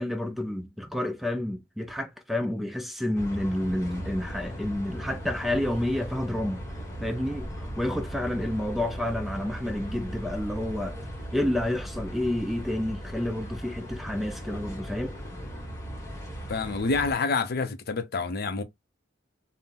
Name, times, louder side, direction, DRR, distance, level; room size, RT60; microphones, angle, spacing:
voice 1, 0.0-6.6 7.0-11.0 11.3-15.1, left 1 dB, ahead, 0.3 m, -29 dB
sound 1, 3.1-17.1, equal, 15° left, 1.1 m, -38 dB
voice 2, 16.5-18.6, left 4 dB, 55° left, 0.5 m, -27 dB
3.6 x 2.0 x 2.7 m
head